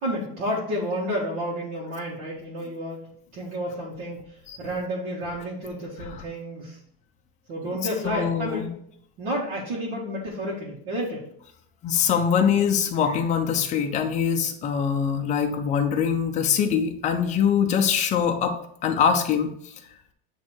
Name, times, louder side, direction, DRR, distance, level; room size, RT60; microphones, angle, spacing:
voice 1, 0.0-3.0 3.3-4.2 4.6-6.8 7.5-8.6 9.2-11.3, equal, 55° right, -6 dB, 1.7 m, -30 dB
voice 2, 8.0-8.7 11.8-18.6 18.8-19.5, left 7 dB, 25° left, 4 dB, 0.5 m, -23 dB
8.1 x 3.2 x 4.4 m, 0.69 s
cardioid pair, 170°, 32 cm